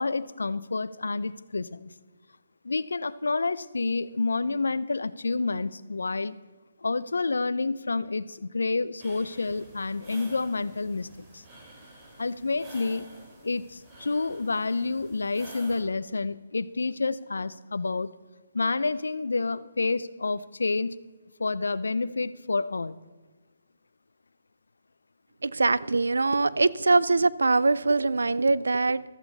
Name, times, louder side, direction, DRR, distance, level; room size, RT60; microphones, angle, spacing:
voice 1, 0.0-1.9 2.6-6.3 6.8-11.4 12.2-13.1 13.4-18.1 18.5-21.0 21.4-23.0, left 3 dB, 80° left, 17 dB, 0.6 m, -29 dB
sound 1, 9.0-15.8, right 1 dB, 25° right, 3.8 m, -49 dB
voice 2, 25.4-29.0, right 3 dB, 80° right, 18 dB, 0.5 m, -23 dB
15.5 x 13.5 x 4.0 m, 1.3 s
figure-of-eight pair, 145°, 0 cm